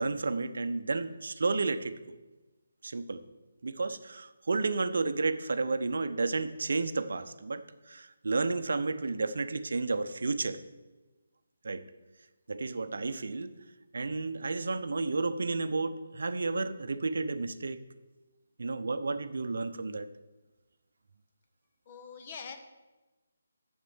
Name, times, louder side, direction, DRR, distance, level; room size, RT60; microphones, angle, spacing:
voice 1, 0.0-2.2 2.8-3.2 3.6-10.6 11.6-11.8 12.5-13.6 13.9-17.8 18.6-20.1, right 3 dB, 65° right, 11 dB, 0.7 m, -32 dB
voice 2, 21.9-22.6, left 5 dB, 35° left, 6 dB, 1.2 m, -43 dB
8.2 x 7.2 x 7.2 m, 1.1 s
figure-of-eight pair, 150°, 0 cm